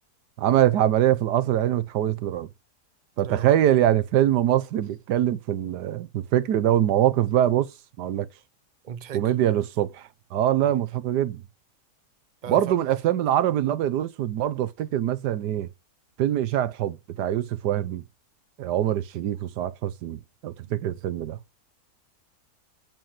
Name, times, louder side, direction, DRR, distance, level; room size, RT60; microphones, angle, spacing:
voice 1, 0.4-2.5 3.2-7.7 8.0-8.3 9.1-11.4 12.5-15.7 16.2-18.0 18.6-21.4, right 11 dB, 80° right, 1.4 m, -23 dB
voice 2, 3.2-3.5 8.8-9.3 10.6-10.8 12.4-12.8 20.6-20.7, right 8 dB, 60° right, 0.5 m, -37 dB
9.0 x 4.7 x 7.4 m
omnidirectional pair, 1.8 m